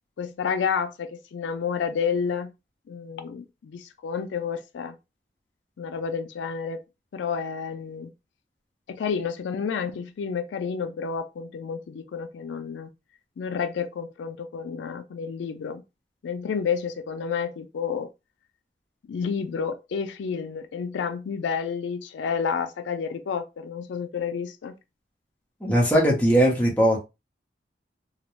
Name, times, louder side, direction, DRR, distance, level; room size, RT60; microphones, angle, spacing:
voice 1, 0.2-2.5 2.9-5.0 5.8-6.8 7.1-8.1 8.9-12.9 13.4-15.8 16.2-18.1 19.1-24.7, left 6 dB, 85° left, 0.3 m, -30 dB
voice 2, 25.6-27.0, equal, 10° left, 0.7 m, -20 dB
2.4 x 2.1 x 3.0 m
head